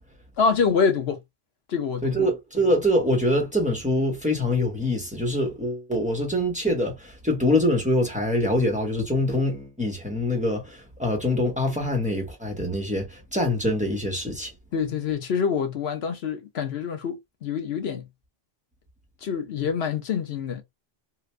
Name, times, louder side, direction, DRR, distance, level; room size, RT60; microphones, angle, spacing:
voice 1, 0.4-1.2 1.7-2.3 14.7-18.1 19.2-20.6, left 6 dB, 80° left, 1.0 m, -26 dB
voice 2, 2.0-14.5, left 1 dB, 5° right, 1.1 m, -24 dB
2.9 x 2.5 x 3.1 m
omnidirectional pair, 1.0 m